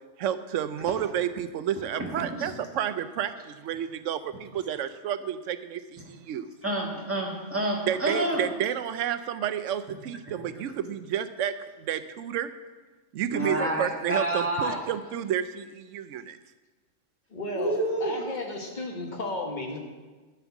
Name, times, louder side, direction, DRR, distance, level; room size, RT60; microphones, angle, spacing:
voice 1, 0.2-6.5 7.9-12.5 13.1-16.4, right 9 dB, 85° right, 11 dB, 0.9 m, -30 dB
voice 2, 2.0-2.5 6.6-8.4 13.3-14.8 17.5-18.1, right 1 dB, 10° right, -2 dB, 1.6 m, -28 dB
voice 3, 17.3-17.7 18.0-19.8, left 2 dB, 40° left, 1 dB, 1.5 m, -33 dB
11.0 x 4.6 x 7.0 m, 1.3 s
omnidirectional pair, 1.3 m